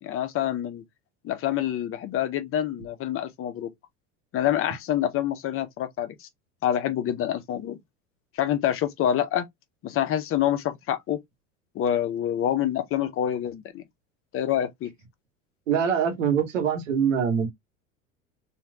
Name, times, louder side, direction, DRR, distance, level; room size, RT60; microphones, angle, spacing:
voice 1, 0.0-0.8 1.2-3.7 4.3-6.3 6.6-7.8 8.3-9.5 9.8-11.2 11.7-13.8 14.3-14.9, left 10 dB, 35° left, 0.7 m, -26 dB
voice 2, 15.7-17.5, right 7 dB, 75° right, 1.3 m, -23 dB
3.1 x 2.8 x 2.3 m
figure-of-eight pair, 75°, 38 cm